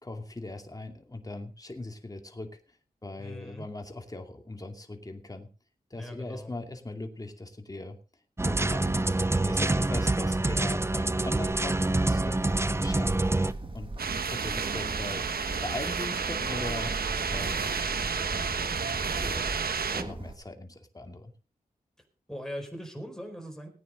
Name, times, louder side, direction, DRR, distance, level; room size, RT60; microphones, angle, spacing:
voice 1, 0.0-2.6 3.0-5.5 5.9-8.0 8.4-9.1 9.4-13.2 13.7-13.9 14.3-15.3 15.6-16.9 17.3-18.5 18.9-21.3, left 2 dB, 25° left, 4 dB, 2.5 m, -40 dB
voice 2, 3.2-3.6 5.9-6.5 22.3-23.7, equal, 5° left, 3 dB, 4.8 m, -40 dB
sound 1, 8.4-13.5, right 2 dB, 15° right, 0.6 m, -26 dB
Bird, 11.5-20.3, right 2 dB, 35° right, 2.3 m, -39 dB
sound 2, 14.0-20.0, right 6 dB, 80° right, 1.2 m, -31 dB
19.0 x 9.5 x 4.1 m, 0.36 s
cardioid pair, 65°, 15 cm